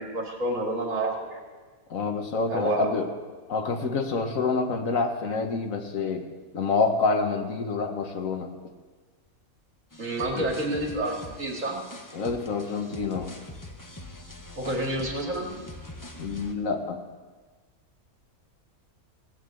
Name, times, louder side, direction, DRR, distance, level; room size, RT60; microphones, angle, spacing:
voice 1, 0.0-1.5 2.5-2.9 10.0-11.8 14.6-15.5, right 1 dB, 60° right, 0 dB, 2.8 m, -29 dB
voice 2, 1.9-3.1 3.5-6.3 6.5-8.5 10.3-10.5 12.1-13.3 16.2-17.1, left 4 dB, 65° left, 6 dB, 1.6 m, -27 dB
sound 1, 9.9-16.5, left 1 dB, 15° left, 0.9 m, -43 dB
17.0 x 9.1 x 7.8 m, 1.4 s
omnidirectional pair, 1.5 m